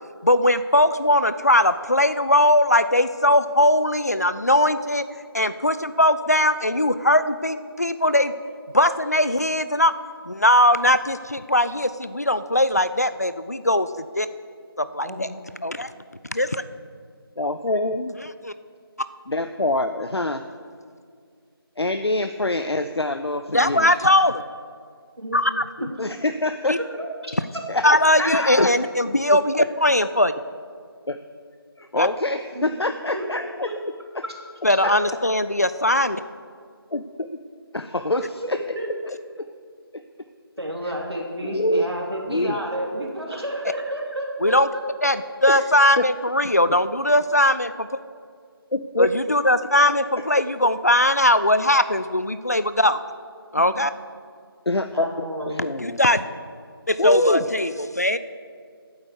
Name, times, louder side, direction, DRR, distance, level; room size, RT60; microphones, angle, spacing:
voice 1, 0.2-5.0 5.3-8.3 8.7-9.9 10.3-14.3 14.8-15.3 15.6-15.9 16.3-16.6 18.4-18.5 23.5-24.4 25.3-25.6 26.7-26.8 27.8-30.3 32.0-32.1 34.6-36.2 44.4-44.7 45.0-47.9 49.0-53.0 53.5-53.9 55.8-56.2 56.9-58.2, left 1 dB, 40° left, 13 dB, 0.4 m, -20 dB
voice 2, 17.4-18.2 19.3-20.4 21.8-24.1 26.0-26.8 27.7-27.8 28.2-28.7 29.6-29.7 31.1-31.2 31.8-33.7 34.2-34.3 34.8-34.9 36.0-36.1 36.9-37.0 37.3-37.4 37.7-38.6 39.1-39.5 39.9-40.0 41.4-41.9 42.3-42.6 45.5-45.6 46.0-46.1 48.7-49.1 54.7-56.0 57.0-57.4, left 2 dB, 90° left, 8 dB, 0.6 m, -25 dB
voice 3, 27.0-27.3 32.5-32.7 33.1-33.3 33.6-33.7 34.2-34.3 34.8-35.0 38.4-38.9 40.6-44.8 53.6-53.7 54.9-55.6, right 1 dB, 85° right, -1 dB, 2.9 m, -31 dB
8.8 x 8.0 x 8.2 m, 2.1 s
figure-of-eight pair, 170°, 13 cm